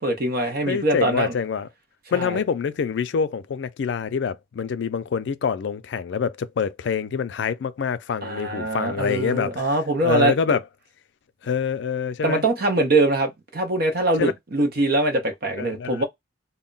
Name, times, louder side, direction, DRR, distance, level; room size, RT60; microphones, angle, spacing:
voice 1, 0.0-1.3 2.1-2.4 8.2-10.3 12.2-16.0, right 2 dB, 55° right, 0.7 m, -23 dB
voice 2, 0.7-1.7 2.1-9.6 10.0-10.6 11.4-12.4 14.2-14.3 15.6-16.0, left 6 dB, 70° left, 0.4 m, -26 dB
2.2 x 2.0 x 3.8 m
head